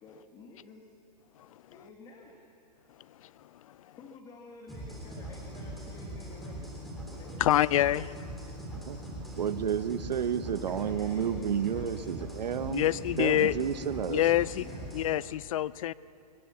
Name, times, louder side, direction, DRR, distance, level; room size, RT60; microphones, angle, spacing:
voice 1, 0.0-0.9 1.7-2.4 4.0-8.0 10.7-14.9, left 4 dB, 20° left, 1 dB, 1.8 m, -51 dB
sound 1, 4.7-15.1, right 1 dB, ahead, 3.2 m, -41 dB
voice 2, 7.4-8.1 12.7-13.5 14.0-14.6 14.9-15.9, left 13 dB, 55° left, 20 dB, 0.5 m, -26 dB
voice 3, 9.4-12.8 13.2-14.2, right 8 dB, 80° right, 12 dB, 1.1 m, -31 dB
22.5 x 20.5 x 7.2 m, 2.6 s
hypercardioid pair, 155°, 21 cm